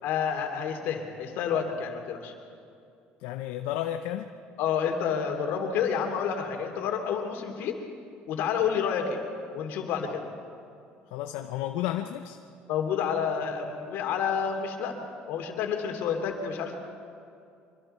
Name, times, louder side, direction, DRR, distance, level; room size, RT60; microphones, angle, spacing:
voice 1, 0.0-2.3 4.6-7.8 8.3-9.2 9.5-10.2 12.7-16.7, left 7 dB, 70° left, 3 dB, 3.0 m, -29 dB
voice 2, 3.2-4.3 11.1-12.4, left 12 dB, 85° left, 6 dB, 0.8 m, -32 dB
25.0 x 23.0 x 4.5 m, 2.5 s
cardioid pair, 110°, 4 cm